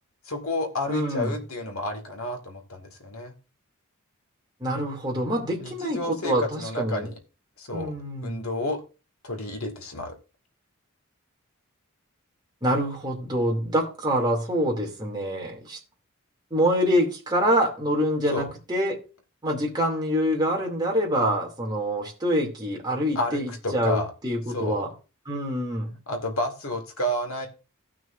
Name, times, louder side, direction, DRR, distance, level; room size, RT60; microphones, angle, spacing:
voice 1, 0.2-3.3 5.6-7.2 7.6-7.9 8.2-8.8 9.2-10.1 18.3-18.5 23.2-24.1 24.5-24.8 26.1-27.5, left 1 dB, 70° left, 2.0 m, -30 dB
voice 2, 0.9-1.4 4.6-7.1 7.7-8.4 12.6-15.8 16.5-19.0 19.4-24.9 25.3-25.9, equal, 20° right, 2.6 m, -26 dB
17.0 x 6.2 x 2.6 m
head